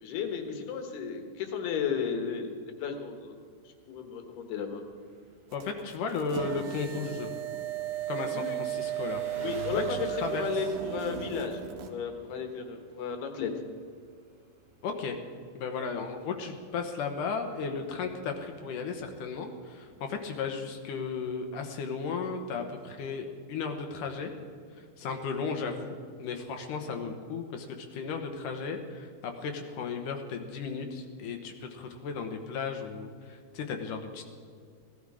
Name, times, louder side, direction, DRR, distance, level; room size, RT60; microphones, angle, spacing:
voice 1, 0.0-3.4 3.7-4.8 8.3-8.6 9.4-13.5, left 6 dB, 85° left, 5 dB, 3.4 m, -34 dB
Engine, 3.1-21.2, right 2 dB, 30° right, 4.2 m, -52 dB
voice 2, 5.5-7.3 8.1-9.2 9.7-10.4 14.8-15.2 15.5-24.3 24.8-34.2, left 5 dB, 70° left, 4 dB, 2.3 m, -35 dB
sound 1, 5.5-11.9, right 11 dB, 70° right, 2.5 m, -35 dB
17.5 x 12.5 x 4.9 m, 2.2 s
omnidirectional pair, 4.4 m